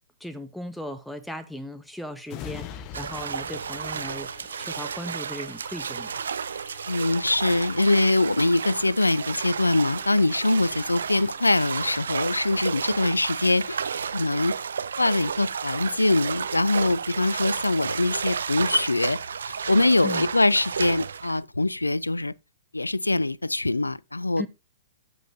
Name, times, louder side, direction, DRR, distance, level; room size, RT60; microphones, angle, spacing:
voice 1, 0.2-6.1 20.0-20.3 24.4-24.5, left 1 dB, ahead, 0.8 m, -37 dB
sound 1, 2.3-15.6 16.0-16.2, left 9 dB, 35° left, 0.8 m, -48 dB
sound 2, 2.9-21.4, right 6 dB, 65° right, 0.5 m, -32 dB
voice 2, 6.9-13.8 14.1-14.5 15.0-19.2 19.5-22.3 22.7-24.4, left 2 dB, 85° left, 0.4 m, -23 dB
15.0 x 5.4 x 2.6 m
figure-of-eight pair, 110°, 0 cm